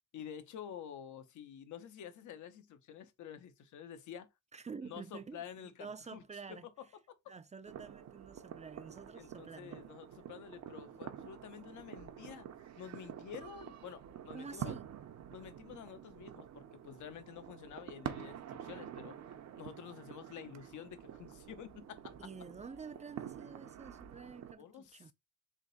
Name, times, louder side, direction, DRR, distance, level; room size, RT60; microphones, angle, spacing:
voice 1, 0.1-4.3 4.8-6.2 6.5-7.2 9.2-12.5 12.8-14.7 15.3-19.2 19.6-22.2 24.6-25.1, left 9 dB, 75° left, 0.9 m, -49 dB
voice 2, 4.5-6.7 7.3-9.8 14.3-14.9 22.2-25.1, right 5 dB, 25° right, 0.5 m, -49 dB
sound 1, 7.7-24.5, right 10 dB, 60° right, 0.8 m, -48 dB
3.6 x 2.7 x 4.0 m
cardioid pair, 90°, 30 cm